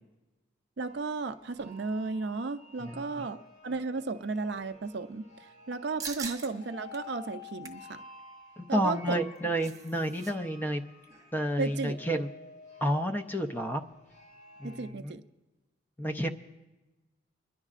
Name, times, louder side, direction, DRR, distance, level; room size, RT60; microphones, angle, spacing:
sound 1, 0.8-14.9, left 4 dB, 30° left, 2.1 m, -52 dB
voice 1, 0.8-8.0 8.7-9.2 11.6-12.0 14.6-15.2, right 3 dB, 55° right, 9 dB, 0.5 m, -34 dB
voice 2, 2.8-3.3 8.6-10.8 11.3-12.3 12.8-13.8 14.6-15.2 16.0-16.3, equal, 10° left, 7 dB, 0.4 m, -30 dB
sound 2, 6.0-6.5 6.9-7.0 7.4-7.9 9.1-10.3 10.6-10.7 11.0-11.3, right 5 dB, 15° right, 0.8 m, -41 dB
29.5 x 10.5 x 2.5 m, 1.1 s
head